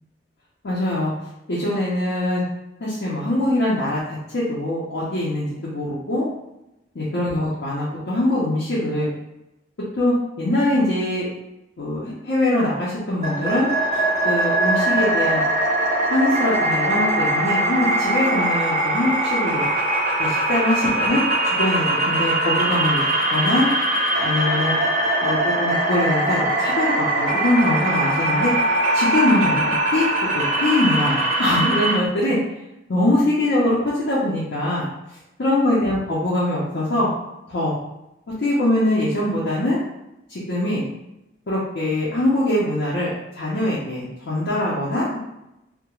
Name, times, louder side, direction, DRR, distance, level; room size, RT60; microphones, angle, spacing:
voice 1, 0.6-1.1 1.5-2.4 2.8-6.3 6.9-9.1 10.0-11.2 11.8-15.4 16.1-19.7 20.2-23.0 23.3-23.7 24.2-24.8 25.2-28.5 28.9-30.0 30.3-32.4 32.9-34.8 35.4-37.1 37.5-37.8 38.4-39.8 40.3-40.8 41.5-45.2, left 1 dB, 75° left, -8 dB, 0.6 m, -22 dB
sound 1, 13.2-32.0, right 1 dB, 40° right, 0.5 m, -21 dB
2.3 x 2.1 x 2.9 m, 0.89 s
head